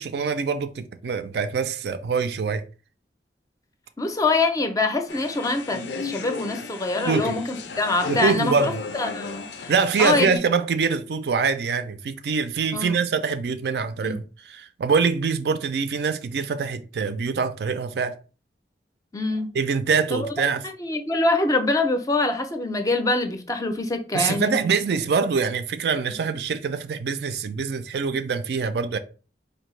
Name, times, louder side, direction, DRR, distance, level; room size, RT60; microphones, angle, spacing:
voice 1, 0.0-2.6 7.1-7.4 8.1-8.7 9.7-14.2 14.6-18.2 19.5-20.6 24.1-29.0, right 5 dB, 70° right, 0.4 m, -24 dB
voice 2, 4.0-9.7 10.0-10.4 12.7-13.0 14.0-14.2 19.1-19.5 20.1-20.3 20.6-24.7, left 2 dB, 20° left, 0.4 m, -25 dB
sound 1, 5.1-10.4, left 5 dB, 80° left, 0.4 m, -34 dB
4.2 x 2.6 x 3.1 m
head